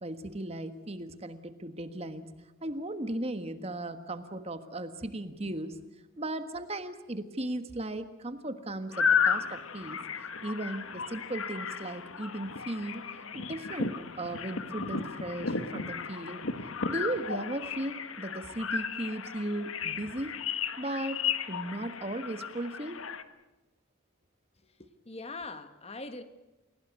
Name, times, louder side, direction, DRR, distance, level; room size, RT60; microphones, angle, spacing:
voice 1, 0.0-2.2 2.6-5.8 6.2-10.0 10.4-13.0 13.3-16.4 16.9-20.4 20.8-21.2 21.5-23.0, right 1 dB, 30° right, 9 dB, 1.5 m, -36 dB
sound 1, 8.9-23.2, left 6 dB, 75° left, 1.5 m, -34 dB
voice 2, 24.8-26.2, left 3 dB, 30° left, 10 dB, 1.3 m, -42 dB
29.5 x 17.5 x 8.2 m, 1.1 s
head